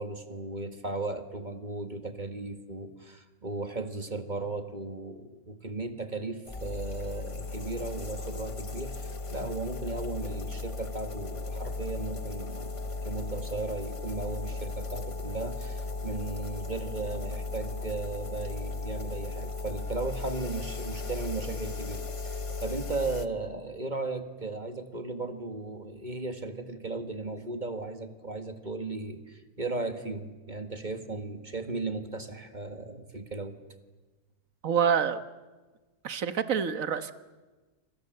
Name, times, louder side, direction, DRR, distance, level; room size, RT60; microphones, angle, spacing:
voice 1, 0.0-12.8 13.0-33.6, right 3 dB, 30° right, 8 dB, 1.9 m, -36 dB
sound 1, 6.5-23.3, left 3 dB, 25° left, 0.8 m, -36 dB
voice 2, 34.6-35.2 36.0-37.1, right 7 dB, 60° right, 11 dB, 1.6 m, -27 dB
28.0 x 25.5 x 7.8 m, 1.3 s
omnidirectional pair, 1.6 m